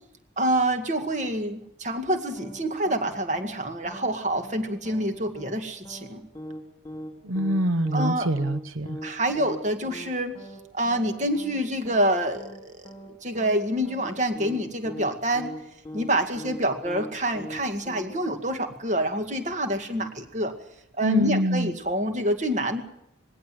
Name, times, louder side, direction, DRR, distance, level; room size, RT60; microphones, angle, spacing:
voice 1, 0.4-6.2 7.9-8.3 9.0-10.4 10.7-12.9 13.2-15.5 15.9-20.5 21.0-22.8, right 1 dB, 35° right, 7 dB, 2.1 m, -27 dB
sound 1, 2.4-2.6 2.9-3.1 3.4-3.6 3.9-4.1 4.4-4.6 4.9-5.1 5.4-5.6 5.9-6.1 6.4-6.6 6.9-7.1 7.4-7.6 7.9-8.1 8.4-8.6 8.9-9.1 9.4-9.6 9.9-10.1 10.4-10.6 10.9-11.1 11.4-11.6 11.9-12.1 12.4-12.6 12.9-13.1 13.4-13.6 13.9-14.1 14.4-14.6 14.9-15.1 15.4-15.6 15.9-16.1 16.4-16.6 16.9-17.1 17.4-17.6 17.9-18.1, equal, 15° left, 3.1 m, -40 dB
voice 2, 7.2-9.0 21.0-21.7, right 1 dB, 85° right, 14 dB, 0.7 m, -25 dB
20.0 x 17.5 x 9.3 m, 0.76 s
head